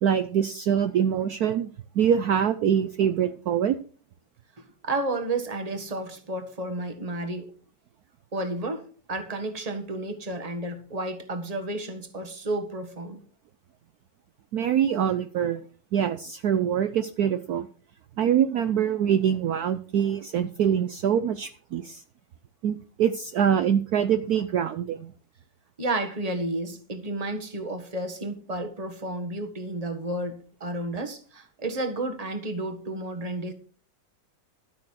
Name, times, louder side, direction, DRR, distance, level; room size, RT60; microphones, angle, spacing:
voice 1, 0.0-3.8 14.5-15.6 15.9-17.7 18.2-22.0 22.6-25.1, right 9 dB, 65° right, 1.1 m, -24 dB
voice 2, 4.6-7.5 8.3-13.2 25.8-33.5, right 2 dB, 20° right, 1.5 m, -32 dB
13.5 x 6.5 x 6.4 m
omnidirectional pair, 2.0 m